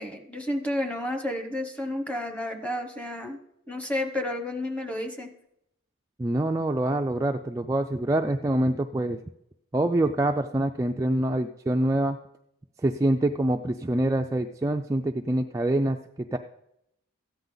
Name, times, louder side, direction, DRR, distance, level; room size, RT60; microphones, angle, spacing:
voice 1, 0.0-3.4 3.7-5.3, left 1 dB, 5° left, 4 dB, 1.0 m, -31 dB
voice 2, 6.2-9.2 9.7-12.2 12.8-16.0 16.3-16.4, right 1 dB, 15° right, 4 dB, 0.3 m, -25 dB
14.0 x 9.3 x 3.9 m, 0.81 s
head